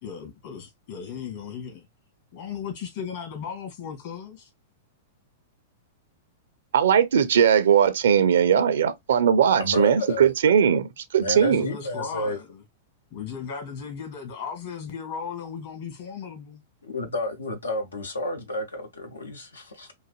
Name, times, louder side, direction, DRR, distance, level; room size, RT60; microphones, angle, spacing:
voice 1, 0.0-1.9 2.3-4.5 11.3-12.6 13.1-16.6, left 7 dB, 55° left, 1.9 m, -36 dB
voice 2, 6.7-10.9 11.1-11.7, right 8 dB, 70° right, 0.5 m, -19 dB
voice 3, 9.6-10.3 11.2-12.4 16.8-19.9, left 1 dB, 85° left, 0.7 m, -31 dB
4.0 x 2.6 x 2.3 m
figure-of-eight pair, 105°, 0 cm